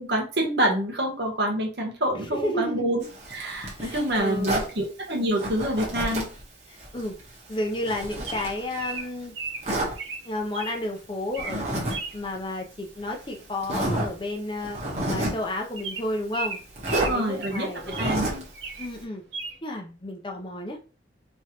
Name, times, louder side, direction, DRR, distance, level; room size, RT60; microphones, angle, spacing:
voice 1, 0.0-3.0 3.3-6.3 17.1-17.7 18.0-18.4, right 1 dB, 65° right, 1 dB, 1.1 m, -26 dB
voice 2, 2.3-3.0 3.8-4.7 6.7-7.2 7.5-9.3 10.2-14.8 15.1-18.2 18.8-19.2 19.6-20.8, left 1 dB, 25° left, 2 dB, 0.6 m, -32 dB
Zipper (clothing), 3.0-4.7 5.4-6.4 6.8-9.0 9.6-9.9 11.4-12.0 12.2-12.4 13.1-13.2 13.6-14.1 14.6-15.4 16.8-17.1 17.8-18.5, right 1 dB, 40° right, 1.2 m, -29 dB
Bird vocalization bird call bird song, 8.3-10.8 11.2-11.6 11.9-12.2 13.7-13.9 14.2-14.3 14.5-14.7 15.2-15.3 15.8-18.2 18.5-18.9 19.3-19.6, right 4 dB, 80° right, 0.7 m, -36 dB
3.5 x 3.2 x 2.9 m, 0.35 s
head